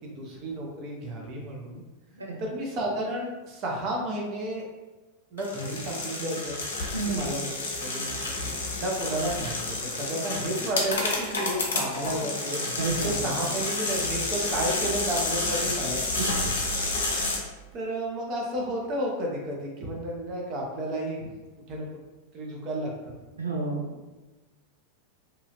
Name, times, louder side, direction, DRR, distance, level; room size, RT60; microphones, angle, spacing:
voice 1, 0.2-1.8 2.4-4.6 5.3-6.6 7.1-7.5 7.8-8.1 8.8-12.6 13.0-16.2 17.7-21.3 21.7-21.9 22.3-23.1, right 1 dB, 35° right, -1 dB, 0.7 m, -32 dB
sound 1, 5.4-17.4, left 2 dB, 65° left, 0.6 m, -30 dB
voice 2, 6.9-7.3 12.8-13.1 16.2-16.5 23.3-23.9, right 3 dB, 75° right, 0 dB, 0.5 m, -31 dB
2.8 x 2.4 x 2.8 m, 1.2 s
figure-of-eight pair, 90°, 0 cm